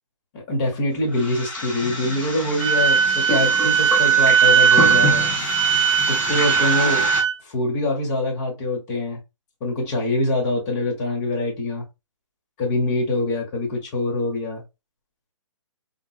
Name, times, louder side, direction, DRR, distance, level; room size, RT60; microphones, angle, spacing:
voice 1, 0.3-5.3 6.1-7.1 7.4-9.2 9.6-11.9 12.6-14.6, left 2 dB, 35° left, 1.7 m, -24 dB
sound 1, 1.1-7.2, left 2 dB, 10° left, 1.2 m, -27 dB
Wind instrument woodwind instrument, 2.6-7.3, right 8 dB, 70° right, 0.5 m, -18 dB
3.7 x 2.7 x 2.5 m
hypercardioid pair, 145°, 16 cm